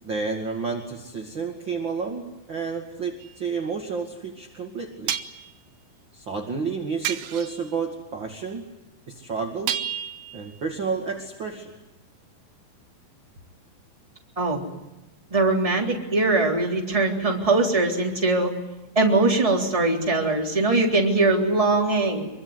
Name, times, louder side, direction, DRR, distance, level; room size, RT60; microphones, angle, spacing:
voice 1, 0.0-5.1 6.1-8.7 9.1-9.8 10.3-11.7, right 5 dB, 35° right, 1 dB, 2.7 m, -30 dB
sound 1, 3.2-3.3 5.1-5.5 7.0-7.7 9.7-10.6, right 10 dB, 80° right, 2.9 m, -30 dB
voice 2, 15.3-18.5 18.9-22.3, right 2 dB, 10° right, 0 dB, 3.3 m, -21 dB
26.0 x 23.5 x 9.6 m, 1.0 s
omnidirectional pair, 4.2 m